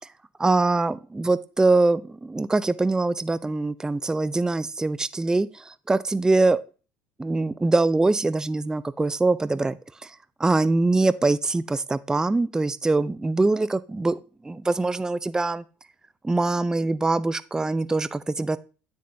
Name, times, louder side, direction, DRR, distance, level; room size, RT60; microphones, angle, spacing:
voice 1, 0.4-6.6 7.2-14.2 14.4-15.6 16.2-18.6, right 3 dB, 10° right, 0.4 m, -23 dB
9.4 x 6.9 x 2.7 m
hypercardioid pair, 70°, 6 cm